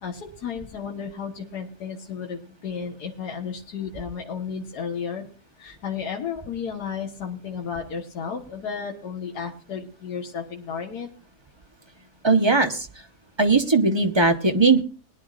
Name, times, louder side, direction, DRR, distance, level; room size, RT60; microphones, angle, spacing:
voice 1, 0.0-5.2 5.6-11.1, left 6 dB, 85° left, 2 dB, 1.9 m, -33 dB
voice 2, 12.2-12.9 13.4-14.8, right 3 dB, 20° right, 5 dB, 0.8 m, -19 dB
21.0 x 10.5 x 2.5 m, 0.39 s
omnidirectional pair, 1.7 m